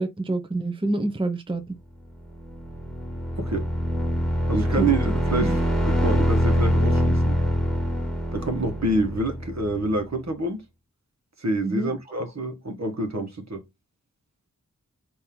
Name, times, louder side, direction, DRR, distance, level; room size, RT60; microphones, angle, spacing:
voice 1, 0.0-1.8 4.8-5.1 5.4-5.6 11.6-11.9, right 2 dB, 15° right, 0.6 m, -27 dB
sound 1, 2.3-10.0, equal, ahead, 1.5 m, -24 dB
voice 2, 3.3-3.7 4.5-7.4 8.3-10.6 11.4-13.6, right 2 dB, 55° right, 1.2 m, -27 dB
4.3 x 2.7 x 3.7 m
wide cardioid pair, 55°, 33 cm